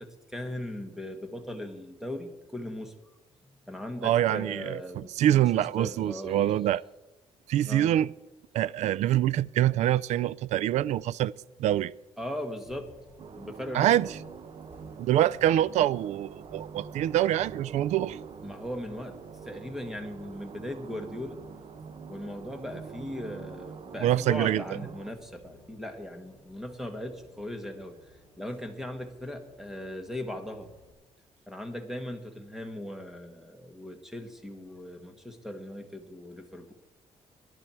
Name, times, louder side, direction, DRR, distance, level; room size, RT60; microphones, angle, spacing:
voice 1, 0.0-2.9 3.6-6.6 7.7-7.9 12.2-12.9 13.3-14.0 18.4-21.4 22.1-30.7 31.5-36.7, left 1 dB, 5° right, 1.8 m, -38 dB
voice 2, 4.0-6.8 7.5-8.1 8.5-11.3 11.6-11.9 13.7-14.1 15.0-18.2 24.0-24.6, right 12 dB, 80° right, 0.4 m, -25 dB
Bus, 12.6-30.9, equal, 20° right, 6.9 m, -57 dB
sound 1, 13.2-25.1, right 6 dB, 50° right, 0.8 m, -45 dB
19.5 x 11.0 x 4.5 m
cardioid pair, 105°, 12 cm